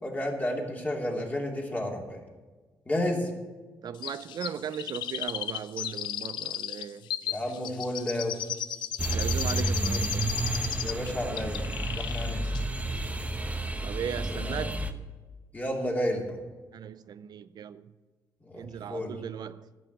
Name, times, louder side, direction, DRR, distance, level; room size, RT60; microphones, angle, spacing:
voice 1, 0.0-2.2 2.9-3.3 7.2-8.3 10.8-11.6 11.9-12.4 14.3-14.5 15.5-16.4 18.4-19.1, left 1 dB, 20° left, 3.1 m, -31 dB
voice 2, 3.8-7.1 9.1-10.4 13.8-14.9 16.7-17.9 18.5-19.7, right 8 dB, 65° right, 0.5 m, -37 dB
Chirp tweet, 4.0-11.1 11.4-12.3 12.5-12.6, left 11 dB, 85° left, 0.5 m, -35 dB
sound 1, 9.0-14.9, right 2 dB, 20° right, 1.1 m, -31 dB
13.5 x 6.2 x 9.1 m
cardioid pair, 80°, 8 cm